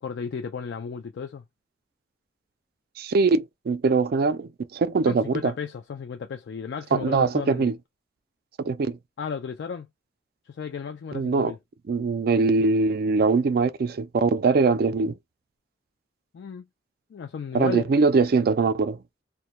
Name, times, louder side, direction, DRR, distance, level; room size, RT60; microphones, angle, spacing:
voice 1, 0.0-1.4 5.1-7.7 9.2-9.9 10.5-11.6 16.3-16.7 17.1-17.9, left 6 dB, 65° left, 0.3 m, -34 dB
voice 2, 3.0-5.5 6.9-7.8 8.6-9.0 11.1-11.6 11.9-15.1 17.5-19.0, right 4 dB, 55° right, 0.3 m, -22 dB
2.1 x 2.1 x 2.7 m
head